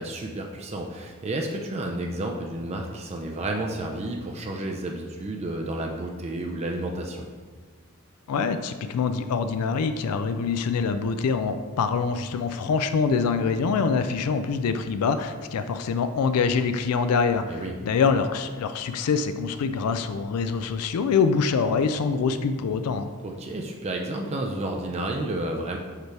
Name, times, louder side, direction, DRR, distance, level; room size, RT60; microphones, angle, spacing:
voice 1, 0.0-7.3 17.5-17.7 23.2-25.8, right 1 dB, 30° right, 1 dB, 0.4 m, -31 dB
voice 2, 8.3-23.1, left 5 dB, 80° left, 10 dB, 0.4 m, -25 dB
6.6 x 3.3 x 4.6 m, 1.5 s
head